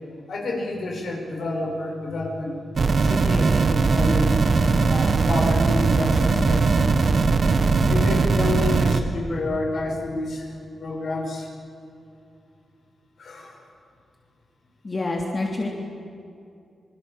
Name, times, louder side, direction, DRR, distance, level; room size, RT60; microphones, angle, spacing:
voice 1, 0.3-2.6 3.0-4.3 4.9-7.1 7.5-10.5 10.8-11.5 13.2-13.6, left 2 dB, 70° left, 0 dB, 6.1 m, -29 dB
sound 1, 2.8-9.0, right 4 dB, 55° right, 1.6 m, -20 dB
voice 2, 14.8-15.7, left 2 dB, 35° left, 0 dB, 3.2 m, -27 dB
28.0 x 20.0 x 7.5 m, 2.5 s
cardioid pair, 65°, 0 cm